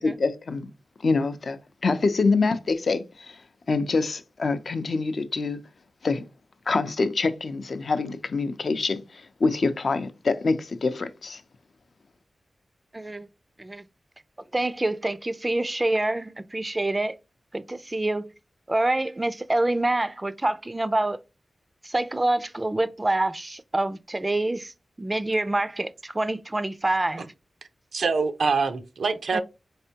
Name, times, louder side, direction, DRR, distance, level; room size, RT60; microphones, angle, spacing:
voice 1, 0.0-0.7 1.0-3.4 3.7-5.6 6.0-6.2 6.7-11.4, left 3 dB, 65° left, 0.5 m, -25 dB
voice 2, 12.9-13.3 13.6-13.9 14.5-17.2 17.5-18.3 18.7-21.2 21.8-24.7 25.0-27.3 29.3-29.4, right 2 dB, 25° right, 0.4 m, -26 dB
voice 3, 27.9-29.4, right 4 dB, 85° right, 0.5 m, -24 dB
4.3 x 3.3 x 2.8 m
wide cardioid pair, 75°, 0 cm